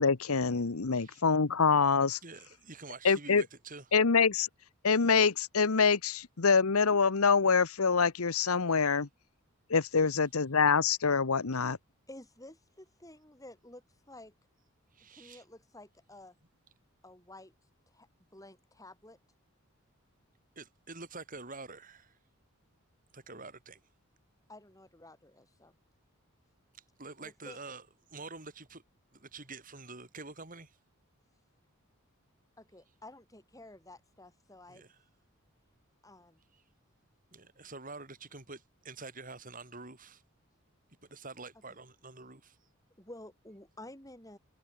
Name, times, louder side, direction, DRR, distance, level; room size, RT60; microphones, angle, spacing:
voice 1, 0.0-2.2 3.0-3.4 3.9-4.5 4.8-9.1 9.7-11.8, left 5 dB, 90° left, 1.0 m, -25 dB
voice 2, 2.2-3.8 10.1-10.2 14.9-15.4 20.6-22.2 23.1-23.8 27.0-28.8 29.1-30.8 34.7-35.0 36.5-36.6 37.3-40.2 41.1-42.6, right 3 dB, 40° right, 6.3 m, -47 dB
voice 3, 12.1-13.8 14.1-14.3 15.1-16.4 17.0-17.5 17.9-19.2 24.5-25.8 27.2-27.6 32.6-34.9 36.0-36.4 43.0-44.4, left 1 dB, 15° left, 7.5 m, -52 dB
head